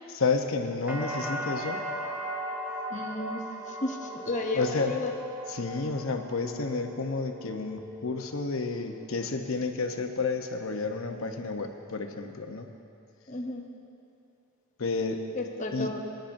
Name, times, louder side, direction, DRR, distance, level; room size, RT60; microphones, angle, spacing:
voice 1, 0.1-1.8 4.5-4.9 5.5-12.7 14.8-15.2 15.7-15.9, left 4 dB, 70° left, 5 dB, 0.8 m, -31 dB
sound 1, 0.9-8.8 9.1-9.8, equal, 10° right, 0.7 m, -38 dB
voice 2, 2.9-3.4 3.7-5.1 13.3-13.7 15.4-16.0, left 2 dB, 35° left, 2 dB, 0.8 m, -33 dB
23.0 x 10.0 x 2.6 m, 2.5 s
head